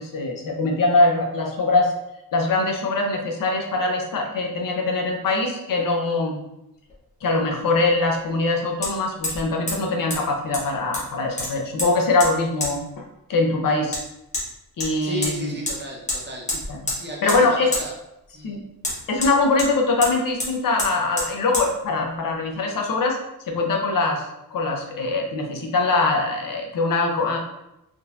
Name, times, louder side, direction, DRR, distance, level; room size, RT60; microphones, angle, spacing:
voice 1, 0.0-1.9 2.3-6.4 7.2-13.0 13.3-14.0 14.8-15.6 16.7-16.9 17.2-17.7 18.4-18.6 19.1-23.2 23.5-27.4, left 3 dB, 65° left, 1 dB, 0.7 m, -22 dB
Hammer, 6.9-7.0 8.8-8.9 9.2-9.4 9.7-9.8 10.1-10.2 10.5-11.1 11.4-11.9 12.2-12.3 12.6-12.7 13.9-14.0 14.3-14.5 14.8-15.3 15.7-15.8 16.1-16.2 16.5-17.0 17.3-17.4 17.7-17.8 18.8-19.7 20.0-20.1 20.4-20.5 20.8-20.9 21.2-21.3 21.5-21.7, left 1 dB, 20° left, 0.9 m, -27 dB
voice 2, 15.0-16.5 16.9-17.9 18.3-18.6, right 1 dB, 30° right, -3 dB, 0.7 m, -34 dB
3.8 x 2.7 x 2.4 m, 0.86 s
wide cardioid pair, 170°, 36 cm